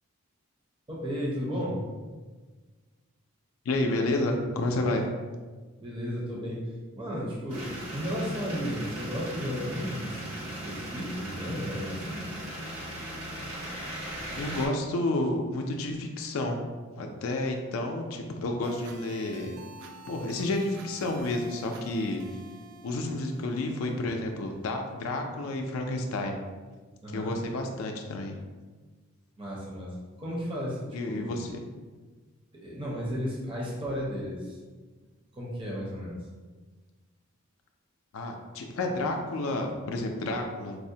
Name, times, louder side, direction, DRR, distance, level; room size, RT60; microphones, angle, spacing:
voice 1, 0.9-1.8 5.8-6.6 7.0-12.2 27.0-27.3 29.4-29.9 30.2-31.4 32.6-34.6 35.3-36.2, equal, 25° right, -5 dB, 0.6 m, -34 dB
voice 2, 3.7-5.1 14.3-16.6 17.0-19.5 20.1-22.2 22.8-26.3 27.1-28.3 30.9-31.5 38.1-40.8, left 2 dB, 65° left, 3 dB, 0.4 m, -30 dB
sound 1, 7.5-14.7, right 1 dB, 90° right, 1.1 m, -38 dB
sound 2, 18.6-24.6, right 4 dB, 70° right, 0.3 m, -49 dB
4.6 x 2.1 x 2.6 m, 1.4 s
head